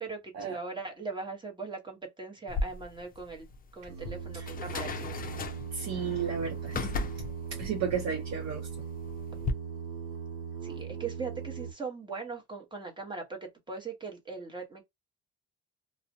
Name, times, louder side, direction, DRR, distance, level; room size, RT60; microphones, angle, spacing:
voice 1, 0.0-3.5 3.7-5.2 10.6-13.4 13.7-14.8, right 4 dB, 15° right, 1.0 m, -40 dB
sound 1, 2.5-9.5, left 3 dB, 30° left, 0.4 m, -37 dB
Singing, 3.8-11.7, right 6 dB, 85° right, 0.9 m, -39 dB
voice 2, 5.7-7.1 7.5-8.7, right 6 dB, 55° right, 0.7 m, -33 dB
2.3 x 2.1 x 2.6 m
cardioid pair, 110°, 32 cm